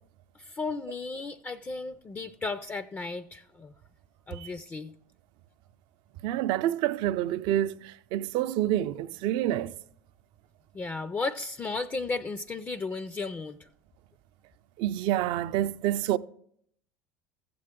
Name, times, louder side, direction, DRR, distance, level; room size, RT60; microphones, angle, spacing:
voice 1, 0.4-3.7 4.3-4.9 10.7-13.7, left 3 dB, 25° left, 0.4 m, -34 dB
voice 2, 6.2-9.7 14.8-16.2, right 13 dB, 65° right, 0.4 m, -28 dB
14.5 x 7.7 x 3.6 m
supercardioid pair, 95°, 9 cm